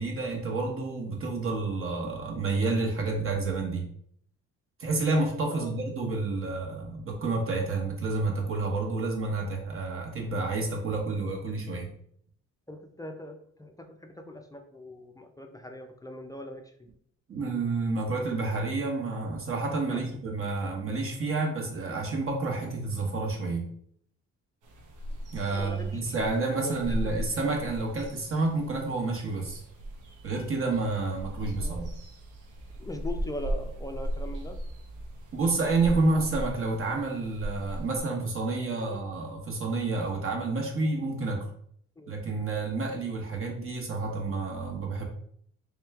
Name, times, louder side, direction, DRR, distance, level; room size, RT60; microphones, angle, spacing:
voice 1, 0.0-3.9 4.8-11.9 17.3-23.7 25.3-29.6 30.2-31.9 35.3-41.4 42.1-45.0, right 3 dB, 45° right, 1 dB, 1.1 m, -29 dB
voice 2, 12.7-16.7 19.9-20.2 25.5-26.1 26.6-26.9 31.6-31.8 32.8-34.6 38.7-39.0 42.0-42.2, left 1 dB, 10° left, 4 dB, 0.4 m, -41 dB
sound 1, 24.6-38.0, equal, 85° right, 0.8 m, -38 dB
3.3 x 3.0 x 3.4 m, 0.66 s
cardioid pair, 90°, 30 cm